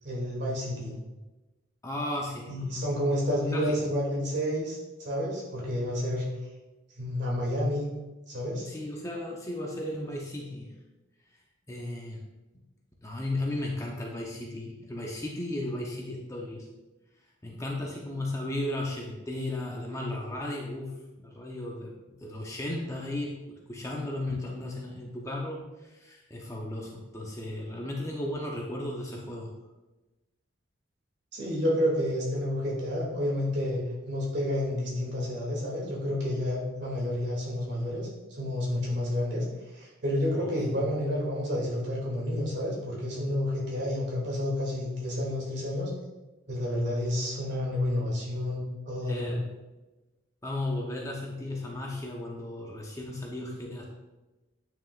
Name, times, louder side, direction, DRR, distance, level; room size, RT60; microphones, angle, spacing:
voice 1, 0.0-0.9 2.5-6.2 7.0-7.9 8.3-8.6 31.3-33.8 34.1-45.9 46.5-49.3, left 1 dB, 55° right, -4 dB, 2.5 m, -30 dB
voice 2, 1.8-2.8 3.5-3.9 8.7-10.7 11.7-12.2 13.0-16.7 17.4-21.9 22.2-29.5 40.3-40.5 49.0-49.5 50.4-53.8, left 1 dB, 15° left, -1 dB, 0.8 m, -35 dB
9.2 x 6.1 x 2.5 m, 1.1 s
head